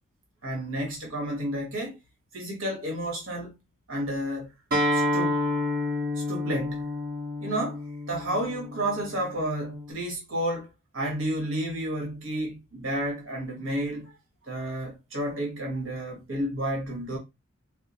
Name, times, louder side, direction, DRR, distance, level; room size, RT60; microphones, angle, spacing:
voice 1, 0.4-2.0 2.3-3.5 3.9-4.5 4.9-5.4 6.1-6.9 7.4-10.7 10.9-14.1 14.4-17.2, right 1 dB, 65° right, 1.5 m, -31 dB
Acoustic guitar, 4.7-9.9, left 1 dB, 45° right, 1.5 m, -29 dB
4.9 x 2.2 x 3.0 m
head